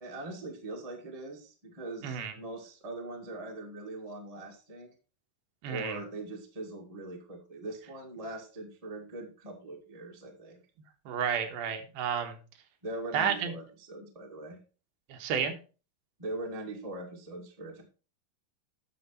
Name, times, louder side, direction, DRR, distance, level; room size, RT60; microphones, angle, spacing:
voice 1, 0.0-4.9 5.7-10.6 12.8-14.6 16.2-17.8, right 2 dB, 20° right, 2 dB, 0.8 m, -41 dB
voice 2, 2.0-2.3 5.6-6.0 11.1-12.4 13.1-13.5 15.1-15.5, right 8 dB, 90° right, 6 dB, 3.1 m, -31 dB
9.3 x 6.8 x 4.4 m, 0.34 s
omnidirectional pair, 4.2 m